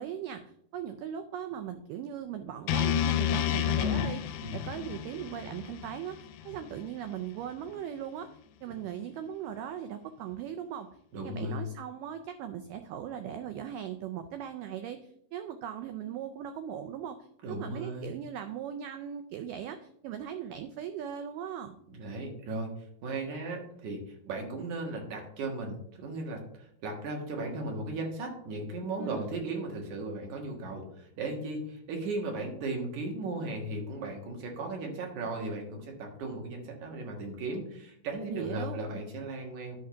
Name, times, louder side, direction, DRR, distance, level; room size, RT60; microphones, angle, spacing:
voice 1, 0.0-8.3 8.6-10.9 11.2-17.2 17.5-21.8 29.0-29.3 38.2-38.8, right 9 dB, 85° right, 8 dB, 1.9 m, -39 dB
sound 1, 2.7-6.8, left 10 dB, 90° left, 2.5 m, -30 dB
voice 2, 11.1-11.6 17.4-18.2 21.9-22.7 23.0-26.4 26.8-39.8, right 2 dB, 60° right, 1 dB, 2.6 m, -36 dB
11.0 x 3.8 x 5.7 m, 0.69 s
omnidirectional pair, 4.4 m